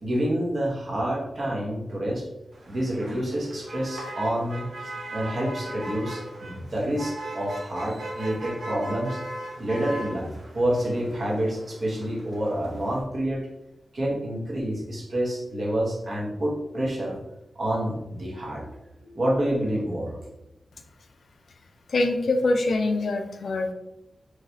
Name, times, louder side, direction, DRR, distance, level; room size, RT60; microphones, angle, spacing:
voice 1, 0.0-2.3 2.7-9.2 9.6-13.5 13.9-17.2 17.5-20.1, right 1 dB, 50° right, -3 dB, 1.2 m, -28 dB
Motor vehicle (road), 2.5-13.0, right 1 dB, 80° right, 1.0 m, -39 dB
voice 2, 21.9-23.7, left 2 dB, 70° left, 5 dB, 0.5 m, -24 dB
4.9 x 3.2 x 2.7 m, 0.92 s
wide cardioid pair, 135°, 0 cm